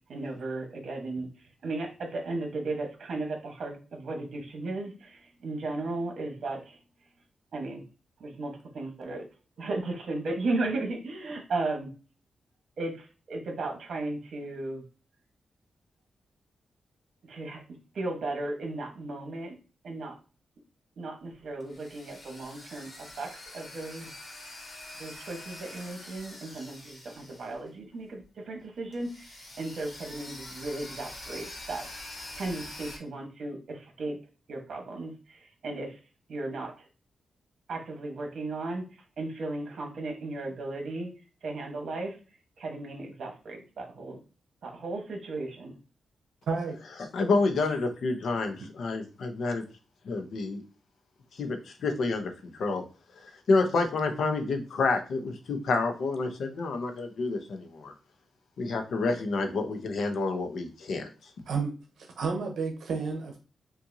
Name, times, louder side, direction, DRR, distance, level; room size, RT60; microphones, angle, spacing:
voice 1, 0.1-1.3 1.6-6.8 7.5-7.8 8.2-9.2 9.6-11.9 12.8-14.8 17.2-17.6 17.9-19.6 19.8-20.2 21.0-24.1 25.0-31.9 32.3-34.2 34.5-36.0 36.3-36.9 37.7-41.1 41.4-42.2 42.6-44.2 44.6-45.8, right 2 dB, 60° right, 1.1 m, -35 dB
sound 1, 21.3-27.9 28.2-28.3 28.9-33.0, left 1 dB, 40° left, 1.3 m, -45 dB
voice 2, 46.5-47.1 48.6-48.7 61.5-63.4, right 4 dB, 80° right, 0.8 m, -32 dB
voice 3, 47.1-49.6 50.0-50.6 51.4-52.3 52.6-52.8 53.5-57.9 58.6-61.1, left 3 dB, 65° left, 0.8 m, -28 dB
5.6 x 2.5 x 2.7 m
wide cardioid pair, 165°, 0 cm